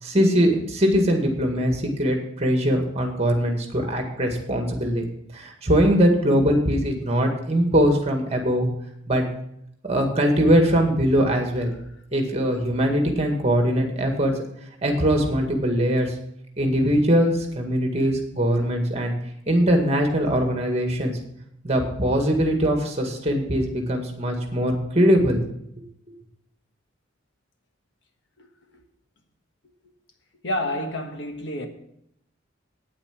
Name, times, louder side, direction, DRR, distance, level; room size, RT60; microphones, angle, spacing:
voice 1, 0.0-5.1 5.3-8.7 9.1-9.3 9.8-11.7 12.1-14.3 14.8-16.1 16.6-19.1 19.5-21.2 21.6-25.4, equal, 35° right, 2.0 m, -21 dB
voice 2, 30.4-31.7, left 1 dB, 65° left, 1.5 m, -29 dB
9.4 x 8.8 x 6.0 m
head